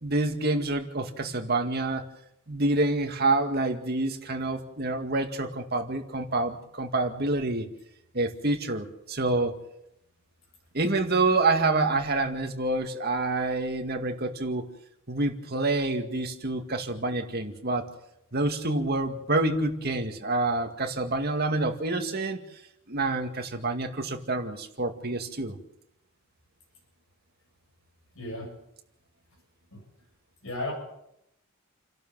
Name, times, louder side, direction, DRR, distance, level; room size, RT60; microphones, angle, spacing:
voice 1, 0.0-2.0 2.5-7.7 8.1-9.6 10.7-14.7 15.1-17.8 18.3-22.4 22.9-25.6, right 2 dB, 45° right, 5 dB, 2.2 m, -27 dB
voice 2, 28.2-28.5 29.7-29.8 30.4-30.7, left 1 dB, 65° left, -1 dB, 7.1 m, -34 dB
29.5 x 12.0 x 7.5 m, 0.81 s
head